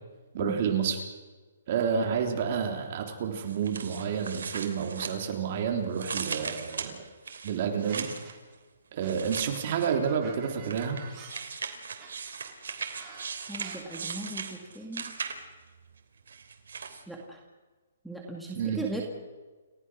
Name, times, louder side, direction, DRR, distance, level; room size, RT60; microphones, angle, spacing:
voice 1, 0.3-1.0 1.7-7.0 7.4-8.1 8.9-11.0 18.5-18.8, right 7 dB, 40° right, 4 dB, 3.5 m, -29 dB
sound 1, 3.5-5.6 5.9-8.3 9.0-10.1 10.6-15.6 16.3-17.0, right 5 dB, 75° right, 3.2 m, -38 dB
sound 2, 7.9-8.5 9.0-13.7, right 7 dB, 20° right, 4.5 m, -48 dB
voice 2, 13.5-14.5 14.8-15.0 17.1-17.4 18.0-19.0, right 2 dB, ahead, -2 dB, 2.0 m, -37 dB
29.5 x 15.0 x 6.3 m, 1.3 s
hypercardioid pair, 165°, 0 cm